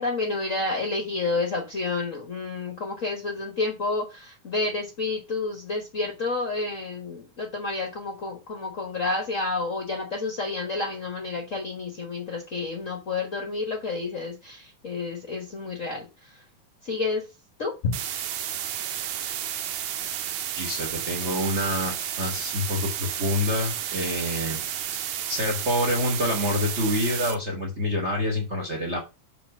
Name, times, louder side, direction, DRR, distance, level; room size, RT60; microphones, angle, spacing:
voice 1, 0.0-16.1 16.8-17.2 17.6-18.0, left 3 dB, 60° left, 3 dB, 0.8 m, -30 dB
sound 1, 17.9-27.3, right 10 dB, 70° right, 2.0 m, -32 dB
voice 2, 20.6-24.6 24.9-29.0, left 1 dB, 50° right, 2 dB, 0.8 m, -27 dB
5.9 x 4.4 x 6.4 m, 0.27 s
omnidirectional pair, 3.6 m